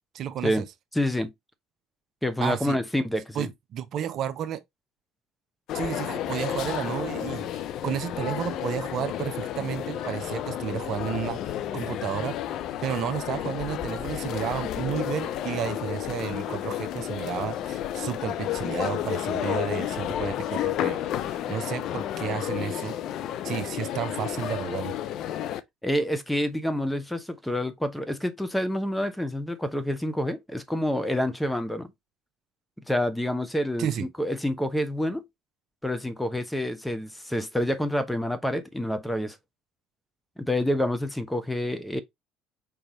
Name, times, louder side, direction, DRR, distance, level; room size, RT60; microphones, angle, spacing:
voice 1, 0.1-0.7 2.4-2.8 3.3-4.6 5.7-12.4 12.8-22.9 23.4-25.0 33.8-34.1, right 9 dB, 55° right, 0.6 m, -32 dB
voice 2, 0.9-1.3 2.2-3.5 25.8-31.9 32.9-35.2 35.8-39.4 40.4-42.0, left 1 dB, 5° left, 0.9 m, -28 dB
sound 1, 5.7-25.6, left 11 dB, 60° left, 0.5 m, -31 dB
5.2 x 3.3 x 3.0 m
hypercardioid pair, 70°, 0 cm